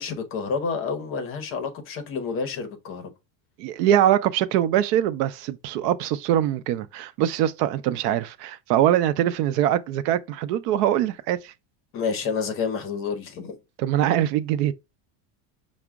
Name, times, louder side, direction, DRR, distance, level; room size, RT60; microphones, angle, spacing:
voice 1, 0.0-3.0 11.9-13.6, left 5 dB, 30° left, 0.6 m, -29 dB
voice 2, 3.6-11.5 13.8-14.7, right 11 dB, 80° right, 0.6 m, -23 dB
5.9 x 2.1 x 3.5 m
cardioid pair, 170°, 47 cm